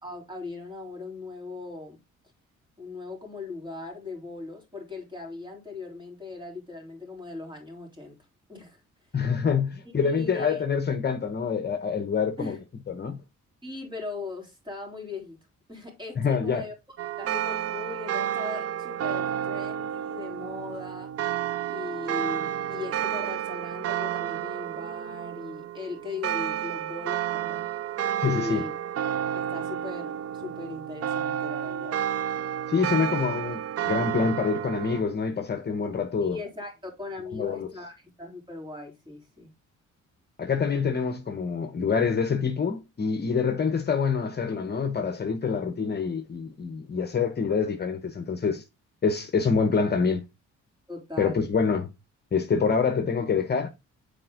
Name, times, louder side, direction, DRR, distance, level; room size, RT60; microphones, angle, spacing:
voice 1, 0.0-2.0 2.8-8.2 8.5-8.8 10.0-10.6 12.4-12.6 13.6-15.4 15.7-16.7 17.2-21.1 21.7-27.7 28.2-28.7 29.3-32.0 36.2-39.5 50.9-51.4, left 3 dB, 15° right, 3.8 m, -38 dB
voice 2, 9.1-12.6 12.9-13.2 16.2-16.6 28.2-28.7 32.7-36.4 37.3-37.7 40.4-48.6 49.0-50.2 51.2-51.9 52.3-53.7, left 5 dB, 35° left, 1.0 m, -26 dB
sound 1, 17.0-35.0, right 10 dB, 50° right, 0.5 m, -31 dB
7.6 x 4.4 x 3.8 m
cardioid pair, 90°, 30 cm